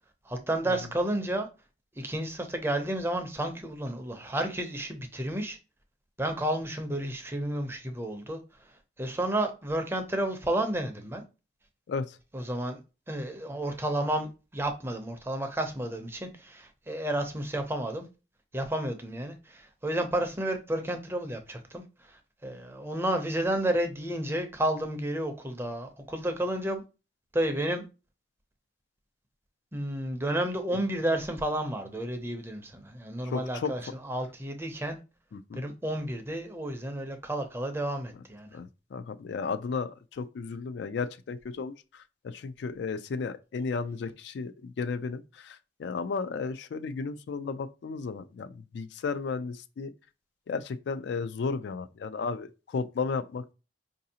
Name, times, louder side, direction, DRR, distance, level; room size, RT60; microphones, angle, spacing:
voice 1, 0.3-1.5 2.0-5.6 6.2-8.4 9.0-11.2 12.3-12.8 13.1-18.1 18.5-26.8 27.3-27.8 29.7-35.0 35.5-38.5, right 1 dB, 15° right, 0.5 m, -31 dB
voice 2, 33.2-33.9 35.3-35.6 38.5-49.9 50.5-53.5, left 4 dB, 70° left, 0.3 m, -34 dB
4.8 x 2.6 x 2.7 m
head